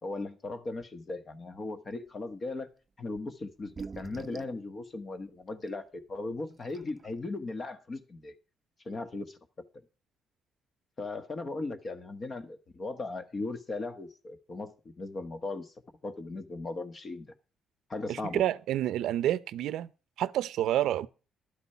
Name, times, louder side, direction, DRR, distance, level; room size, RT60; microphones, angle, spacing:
voice 1, 0.0-2.7 3.0-8.3 8.8-9.6 11.0-15.7 16.0-17.3 17.9-18.4, left 3 dB, 40° left, 1.4 m, -38 dB
sound 1, 3.2-3.3 3.6-4.6 5.7-5.8 6.3-6.4 6.6-7.1, right 4 dB, 35° right, 0.6 m, -43 dB
voice 2, 18.1-19.9 20.2-21.1, right 12 dB, 80° right, 0.6 m, -29 dB
12.0 x 8.3 x 5.7 m
cardioid pair, 90°, 0 cm